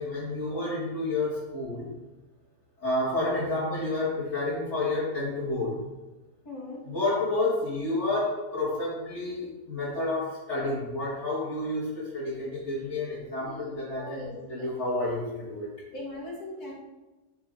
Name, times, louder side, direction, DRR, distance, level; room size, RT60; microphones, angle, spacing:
voice 1, 0.0-1.9 2.8-5.8 6.8-15.7, left 2 dB, 45° left, -11 dB, 3.3 m, -30 dB
voice 2, 6.4-6.9 13.4-13.6 14.0-15.0 15.9-16.7, left 2 dB, 65° left, -3 dB, 3.1 m, -41 dB
14.0 x 5.9 x 4.3 m, 1.1 s
omnidirectional pair, 1.8 m